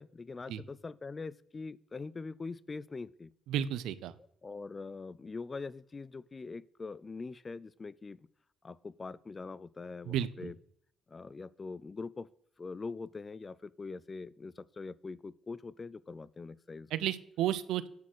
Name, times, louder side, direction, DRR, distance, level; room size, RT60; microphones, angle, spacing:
voice 1, 0.0-3.3 4.4-8.2 8.6-10.6 11.1-12.3 12.6-16.9, left 4 dB, 30° left, 20 dB, 0.3 m, -43 dB
voice 2, 3.5-4.1 10.1-10.5 16.9-17.9, right 11 dB, 90° right, 15 dB, 0.5 m, -32 dB
9.5 x 4.2 x 6.1 m, 0.71 s
cardioid pair, 90°, 0 cm